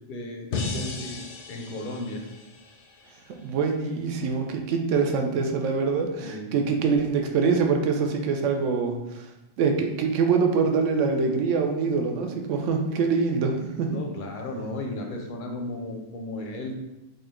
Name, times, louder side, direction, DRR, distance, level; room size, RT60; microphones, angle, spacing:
voice 1, 0.1-1.1 1.5-2.2 6.2-6.5 13.9-16.8, left 1 dB, 55° left, 2 dB, 0.6 m, -34 dB
sound 1, 0.5-3.6, left 3 dB, 80° left, 1.0 m, -36 dB
voice 2, 3.3-9.3 9.6-14.0, right 5 dB, 85° right, 3 dB, 0.9 m, -24 dB
3.8 x 2.2 x 3.6 m, 0.95 s
omnidirectional pair, 1.3 m